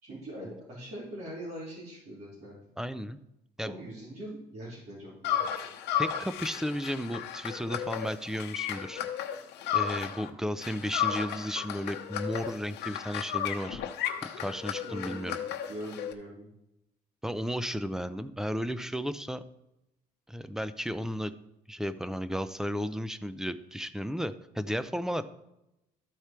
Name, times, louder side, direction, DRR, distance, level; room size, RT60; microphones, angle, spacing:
voice 1, 0.0-2.6 3.6-5.4 14.8-16.5, right 1 dB, 65° right, -9 dB, 3.5 m, -42 dB
voice 2, 2.8-3.2 3.6-3.7 6.0-9.0 9.7-13.8 14.4-15.4 17.2-19.4 20.3-21.3 21.7-25.2, equal, 5° right, 13 dB, 0.5 m, -34 dB
sound 1, 5.2-10.3 10.6-16.1, left 10 dB, 85° left, 0.9 m, -34 dB
13.0 x 4.7 x 4.4 m, 0.86 s
cardioid pair, 110°, 17 cm